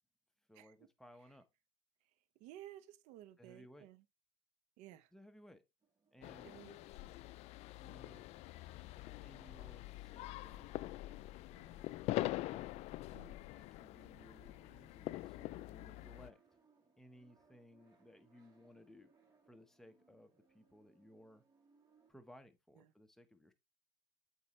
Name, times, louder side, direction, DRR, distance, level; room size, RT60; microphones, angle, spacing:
voice 1, 0.5-1.5 3.4-3.9 5.1-5.6 6.1-6.6 7.8-8.3 9.2-10.7 13.5-16.4 17.0-19.1 19.5-21.4 22.1-23.5, equal, 5° left, 1.0 m, -61 dB
voice 2, 2.4-4.0 4.8-5.1 6.4-6.8 13.1-13.4 22.8-22.9, right 13 dB, 60° right, 0.8 m, -55 dB
sound 1, 5.8-22.1, right 4 dB, 30° right, 2.6 m, -73 dB
sound 2, 6.2-16.3, left 17 dB, 55° left, 0.4 m, -44 dB
8.1 x 4.2 x 3.2 m
hypercardioid pair, 85°, 14 cm